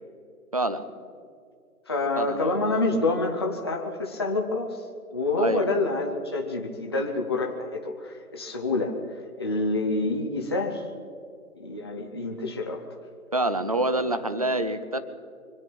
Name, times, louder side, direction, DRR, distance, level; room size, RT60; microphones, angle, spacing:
voice 1, 0.5-0.8 2.2-2.5 5.4-5.7 13.3-15.0, right 1 dB, 25° right, 11 dB, 0.6 m, -26 dB
voice 2, 1.9-4.8 5.1-10.8 11.6-12.8, left 2 dB, 20° left, 0 dB, 0.6 m, -27 dB
25.0 x 8.9 x 6.0 m, 2.2 s
figure-of-eight pair, 155°, 45 cm